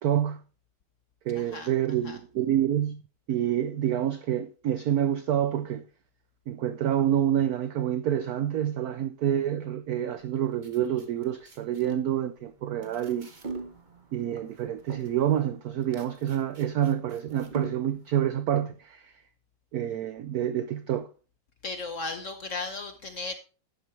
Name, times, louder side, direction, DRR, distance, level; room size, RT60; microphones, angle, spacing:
voice 1, 0.0-0.4 1.3-3.0 3.3-5.8 6.5-13.3 14.1-19.1 19.7-21.1, right 10 dB, 90° right, 0.8 m, -27 dB
voice 2, 1.3-1.7 2.0-2.2 21.6-23.3, left 3 dB, 55° left, 0.9 m, -35 dB
sound 1, 10.2-18.1, right 3 dB, 30° right, 1.0 m, -44 dB
11.0 x 9.2 x 3.2 m
omnidirectional pair, 2.2 m